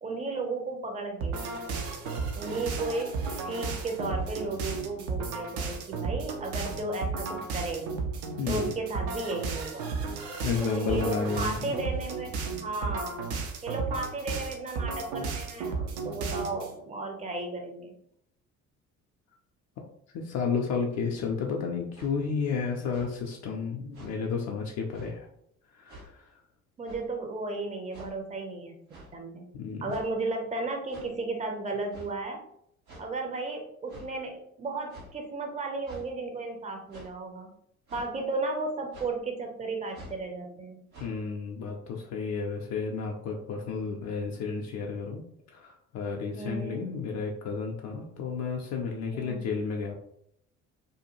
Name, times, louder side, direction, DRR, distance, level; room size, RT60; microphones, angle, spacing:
voice 1, 0.0-1.4 2.3-7.9 8.5-9.9 10.6-12.3 12.6-13.2 13.6-17.9 26.8-28.8 29.1-29.5 29.8-32.4 33.0-37.5 37.9-40.8 46.3-46.8 49.1-49.5, right 2 dB, 15° right, 2 dB, 0.6 m, -34 dB
sound 1, 1.2-16.7, right 4 dB, 60° right, 0.6 m, -34 dB
voice 2, 8.4-8.7 10.4-11.7 20.1-25.3 25.8-26.2 29.5-29.8 41.0-45.2 45.5-50.0, left 5 dB, 40° left, 1 dB, 0.5 m, -32 dB
sound 2, 21.9-22.1 22.8-23.1 23.9-24.1 24.9-25.1 25.9-26.1 26.8-27.1 27.9-28.1 28.9-29.1 29.9-30.2 30.9-31.1 31.9-32.1 32.9-33.1 33.9-34.1 34.9-35.1 35.8-36.1 36.9-37.1 37.9-38.1 38.9-39.1 39.9-40.2 40.9-41.0, right 1 dB, 75° right, 1.1 m, -47 dB
2.6 x 2.2 x 2.9 m, 0.72 s
figure-of-eight pair, 55°, 41 cm